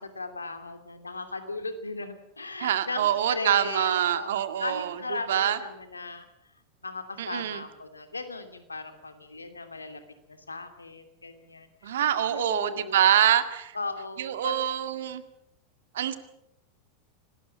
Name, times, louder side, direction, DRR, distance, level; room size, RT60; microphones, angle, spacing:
voice 1, 0.0-6.3 6.8-10.0 10.3-12.0 12.3-13.1 13.7-14.5, left 3 dB, 85° left, 8 dB, 2.8 m, -37 dB
voice 2, 2.6-5.0 5.3-5.6 7.2-7.6 11.8-13.8 14.2-15.2 15.9-16.2, right 10 dB, 65° right, 10 dB, 2.0 m, -25 dB
26.0 x 19.5 x 7.4 m, 0.80 s
figure-of-eight pair, 90°, 0 cm